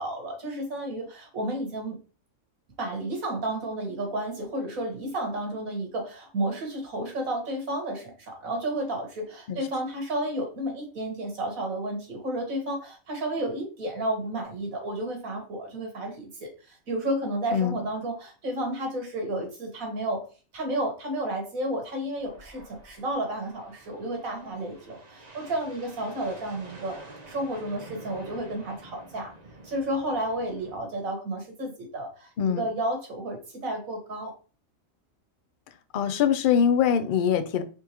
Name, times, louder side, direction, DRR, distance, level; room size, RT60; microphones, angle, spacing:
voice 1, 0.0-2.0 2.8-20.2 20.5-27.0 27.3-29.3 29.6-34.3, right 1 dB, 90° right, 2 dB, 1.9 m, -32 dB
sound 1, 22.2-30.8, right 2 dB, 35° right, 0.9 m, -48 dB
voice 2, 32.4-32.7 35.9-37.6, left 8 dB, 60° left, 10 dB, 0.5 m, -23 dB
4.5 x 3.6 x 2.9 m, 0.36 s
omnidirectional pair, 1.4 m